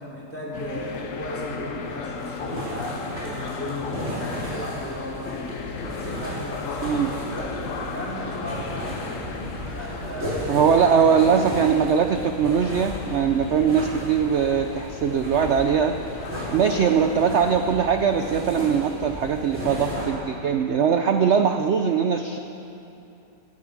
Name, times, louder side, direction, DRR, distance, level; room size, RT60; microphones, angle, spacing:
voice 1, 0.0-5.4 5.8-7.2 7.7-9.1 9.7-11.2, left 1 dB, 5° left, -6 dB, 2.8 m, -36 dB
Madrid airport, 0.5-17.8, left 5 dB, 55° left, 1.1 m, -36 dB
sound 1, 2.2-20.0, equal, 45° right, 4.5 m, -35 dB
sound 2, 4.9-5.5 6.1-8.6 9.2-10.2, left 1 dB, 25° left, 1.7 m, -44 dB
voice 2, 10.5-15.9 16.5-22.4, right 7 dB, 80° right, 6 dB, 0.6 m, -21 dB
16.0 x 9.8 x 6.1 m, 2.8 s
omnidirectional pair, 1.8 m